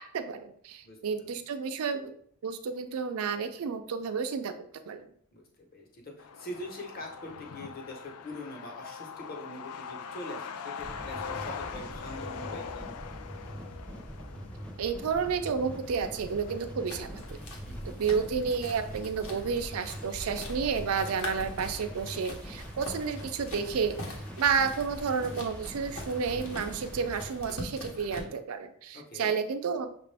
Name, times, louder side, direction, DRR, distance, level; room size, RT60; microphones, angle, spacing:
voice 1, 0.1-2.1 2.4-4.6 4.9-5.1 14.8-17.4 17.9-24.0 24.4-29.9, right 6 dB, 80° right, 8 dB, 0.4 m, -31 dB
voice 2, 0.8-1.3 5.3-12.9 17.7-18.0 28.9-29.3, left 1 dB, 40° left, 1 dB, 1.0 m, -43 dB
Truck, 6.2-21.4 21.7-21.8 22.0-22.9 23.2-23.3 23.7-24.0, left 6 dB, 85° left, 0.4 m, -43 dB
sound 1, 10.8-27.3, equal, 5° left, 0.6 m, -43 dB
sound 2, 16.9-28.2, left 1 dB, 70° left, 1.0 m, -43 dB
6.4 x 2.5 x 3.4 m, 0.62 s
head